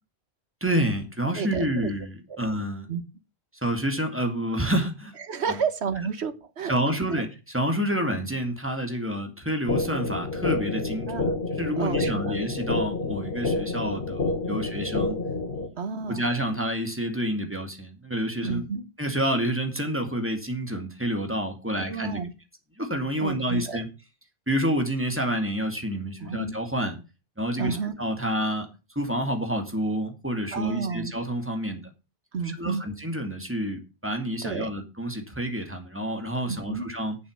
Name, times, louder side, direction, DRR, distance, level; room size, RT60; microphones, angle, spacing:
voice 1, 0.6-2.9 3.5-5.1 5.5-5.6 6.7-11.2 11.5-15.2 15.5-15.8 16.1-18.7 19.0-22.2 22.8-23.9 24.5-26.9 27.4-28.7 29.0-31.8 32.4-37.2, equal, 10° right, 4 dB, 2.4 m, -28 dB
voice 2, 1.3-1.9 2.3-2.4 2.9-3.0 5.3-6.7 7.1-7.2 11.1-11.3 11.8-12.4 14.8-14.9 15.8-16.3 18.4-18.8 21.7-22.3 23.2-23.8 26.2-26.5 27.6-27.9 30.5-31.1 32.3-32.8 34.4-34.7 36.4-36.9, right 5 dB, 80° right, 11 dB, 1.5 m, -31 dB
sound 1, 9.7-15.7, left 3 dB, 60° left, 2.0 m, -28 dB
8.6 x 7.3 x 7.3 m, 0.30 s
omnidirectional pair, 1.1 m